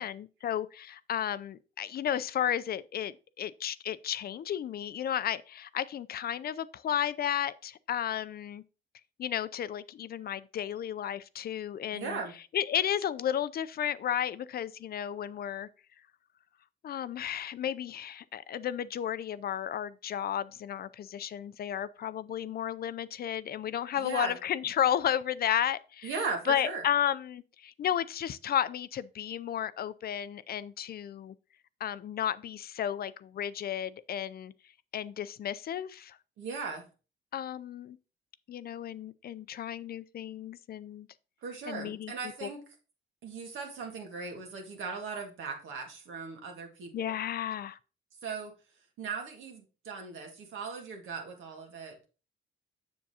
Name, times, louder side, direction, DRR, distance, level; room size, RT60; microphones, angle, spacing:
voice 1, 0.0-8.6 9.2-12.2 12.5-15.7 16.8-26.1 26.5-31.3 31.8-34.5 34.9-36.2 37.3-38.0 38.5-41.1 41.7-42.1 42.4-42.5 46.9-47.8, left 10 dB, 50° left, 0.4 m, -33 dB
voice 2, 11.9-12.3 24.0-24.4 26.0-26.8 36.4-36.9 41.4-42.6 43.2-47.1 48.2-48.5 49.0-52.1, right 5 dB, 80° right, 1.8 m, -38 dB
7.2 x 7.1 x 2.8 m
cardioid pair, 90°, 20 cm